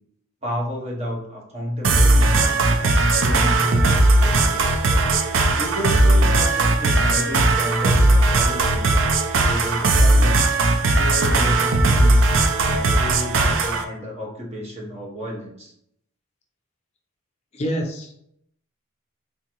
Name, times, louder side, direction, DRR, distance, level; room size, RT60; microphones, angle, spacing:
voice 1, 0.4-4.8 5.5-9.0 9.4-10.5 11.0-12.2 12.6-15.7, equal, 30° right, -2 dB, 0.9 m, -31 dB
sound 1, 1.8-13.8, right 2 dB, 60° right, 0.4 m, -18 dB
voice 2, 17.5-18.3, equal, 30° left, 1 dB, 0.4 m, -27 dB
3.5 x 2.8 x 2.9 m, 0.72 s
head